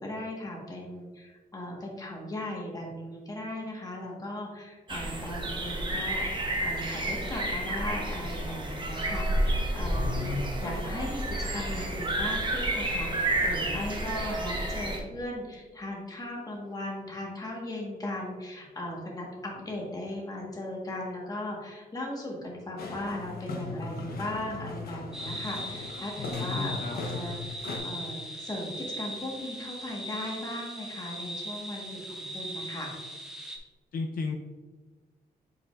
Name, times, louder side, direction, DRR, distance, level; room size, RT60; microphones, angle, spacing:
voice 1, 0.0-10.3 10.6-27.5 27.8-32.9, left 1 dB, 25° left, -2 dB, 1.5 m, -37 dB
sound 1, 4.9-15.0, right 1 dB, 30° right, 1.0 m, -30 dB
voice 2, 10.0-10.8 26.2-27.0 33.9-34.4, left 4 dB, 70° left, 1 dB, 0.6 m, -34 dB
sound 2, 22.8-27.8, left 3 dB, 85° left, 1.1 m, -38 dB
sound 3, 25.1-33.6, equal, 5° right, 0.7 m, -39 dB
7.9 x 4.9 x 2.5 m, 1.4 s
wide cardioid pair, 150°, 16 cm